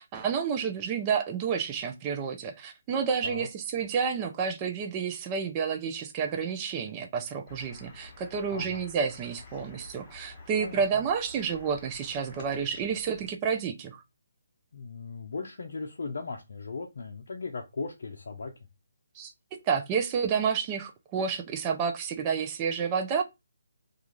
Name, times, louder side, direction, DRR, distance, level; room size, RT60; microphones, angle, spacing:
voice 1, 0.0-14.0 19.2-23.2, right 6 dB, 25° right, 0.4 m, -30 dB
sound 1, 7.5-13.3, left 2 dB, 25° left, 1.1 m, -50 dB
voice 2, 8.5-8.9 10.6-11.0 14.7-18.5, left 4 dB, 65° left, 0.5 m, -37 dB
2.4 x 2.4 x 3.0 m
figure-of-eight pair, 150°, 0 cm